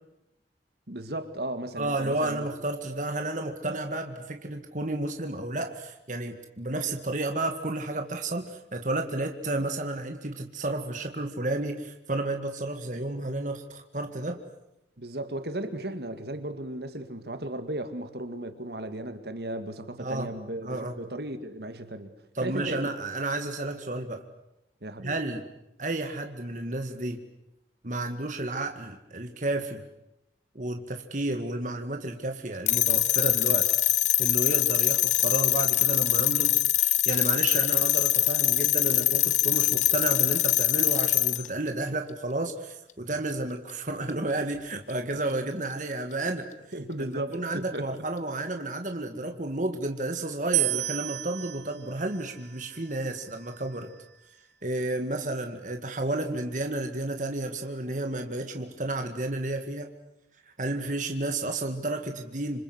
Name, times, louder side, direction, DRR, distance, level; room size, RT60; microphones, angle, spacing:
voice 1, 0.9-2.5 15.0-22.1 22.4-22.9 24.8-25.1 46.7-48.0, right 1 dB, 65° right, 9 dB, 2.2 m, -35 dB
voice 2, 1.8-14.4 20.0-20.3 20.6-21.0 22.4-24.2 25.0-25.4 25.8-27.2 27.8-29.8 30.6-33.7 34.2-46.5 47.1-53.9 54.6-59.9 60.5-62.6, right 2 dB, 45° right, 5 dB, 2.0 m, -31 dB
sound 1, 32.7-41.5, left 14 dB, 40° left, 1.0 m, -23 dB
sound 2, 50.5-53.8, right 15 dB, 80° right, 1.2 m, -32 dB
27.0 x 26.0 x 8.1 m, 0.87 s
head